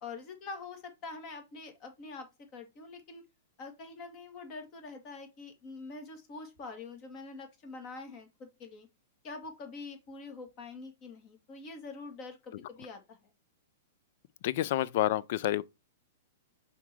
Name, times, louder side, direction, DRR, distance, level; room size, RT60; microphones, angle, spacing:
voice 1, 0.0-2.3 2.5-3.2 3.6-8.9 9.2-13.3, left 3 dB, 40° left, 2.3 m, -45 dB
voice 2, 14.4-15.6, left 13 dB, 60° left, 0.5 m, -28 dB
5.9 x 3.9 x 4.6 m
hypercardioid pair, 115°, 0 cm